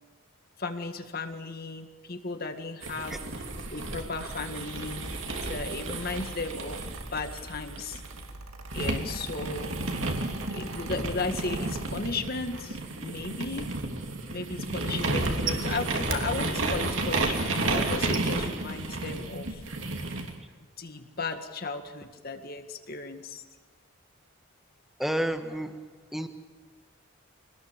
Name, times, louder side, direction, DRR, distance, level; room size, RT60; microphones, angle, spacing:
voice 1, 0.6-3.2 3.7-8.0 8.7-9.8 10.5-13.7 14.3-19.6 20.8-23.4, left 3 dB, 45° left, 7 dB, 1.9 m, -35 dB
sound 1, 2.8-8.2 8.7-20.3, right 2 dB, 60° right, 3.0 m, -32 dB
Mechanical fan, 4.1-12.0, right 2 dB, 85° right, 2.1 m, -44 dB
voice 2, 25.0-25.8 26.1-26.3, right 1 dB, ahead, 6 dB, 1.5 m, -30 dB
25.5 x 19.0 x 7.5 m, 1.5 s
head